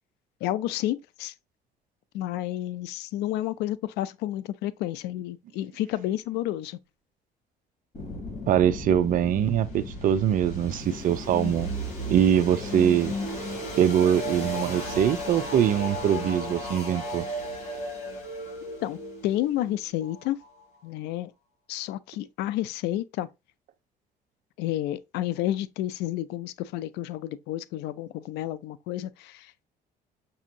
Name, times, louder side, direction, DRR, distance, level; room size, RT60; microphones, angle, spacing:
voice 1, 0.4-1.3 2.1-6.8 18.8-20.4 20.8-21.3 21.7-23.3 24.6-29.6, left 14 dB, 90° left, 0.4 m, -30 dB
sound 1, 7.9-20.8, left 1 dB, 45° left, 2.8 m, -35 dB
voice 2, 8.5-11.7 12.1-13.2 13.8-17.2, right 9 dB, 55° right, 0.5 m, -23 dB
6.0 x 2.7 x 2.6 m
cardioid pair, 110°, 17 cm